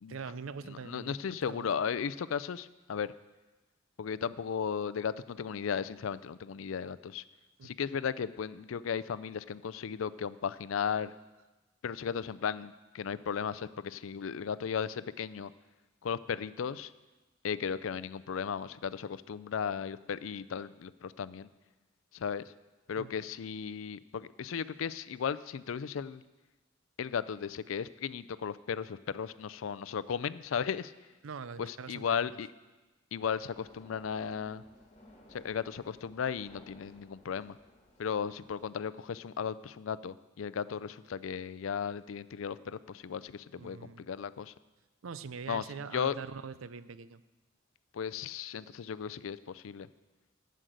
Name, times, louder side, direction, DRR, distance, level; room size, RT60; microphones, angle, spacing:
voice 1, 0.1-1.8 7.6-7.7 23.0-23.1 31.2-32.4 43.6-44.1 45.0-47.2, right 5 dB, 90° right, 14 dB, 0.5 m, -43 dB
voice 2, 0.7-3.1 4.0-7.2 7.6-11.1 11.8-15.5 16.0-16.9 17.4-21.5 22.1-22.4 22.9-26.2 27.0-30.9 31.6-32.5 33.1-34.6 35.3-37.6 38.0-44.5 45.5-45.6 45.9-46.2 47.9-49.9, left 7 dB, 80° left, 15 dB, 0.4 m, -35 dB
sound 1, 33.4-38.7, left 1 dB, 35° left, 1.9 m, -58 dB
11.5 x 6.5 x 7.8 m, 1.1 s
head